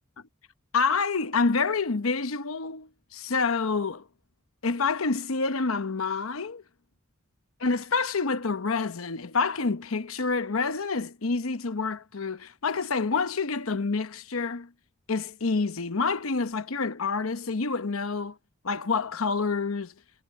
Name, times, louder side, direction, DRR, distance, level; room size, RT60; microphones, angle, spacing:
voice 1, 0.7-4.0 4.6-6.6 7.6-14.7 15.1-18.4 18.6-19.9, left 4 dB, 80° left, 1.0 m, -28 dB
head